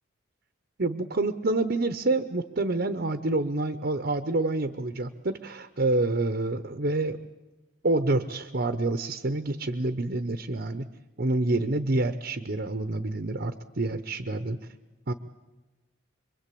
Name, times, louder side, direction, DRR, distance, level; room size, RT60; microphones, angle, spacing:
voice 1, 0.8-7.2 7.8-10.9 11.2-14.6 15.1-15.2, right 2 dB, 50° right, 10 dB, 0.9 m, -27 dB
25.5 x 23.5 x 8.5 m, 1.1 s
head